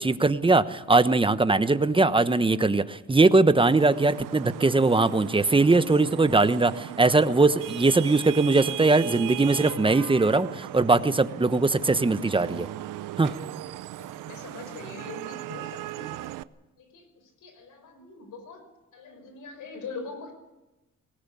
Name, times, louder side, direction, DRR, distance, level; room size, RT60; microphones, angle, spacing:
voice 1, 0.0-12.7 13.2-13.3, right 3 dB, 15° right, 12 dB, 1.1 m, -21 dB
Vehicle horn car horn honking / Traffic noise roadway noise, 3.7-16.4, right 15 dB, 85° right, 0.7 m, -38 dB
voice 2, 14.0-16.3 16.8-18.6 18.9-20.3, left 4 dB, 75° left, 7 dB, 5.7 m, -42 dB
19.5 x 18.5 x 8.6 m, 1.0 s
cardioid pair, 95°, 31 cm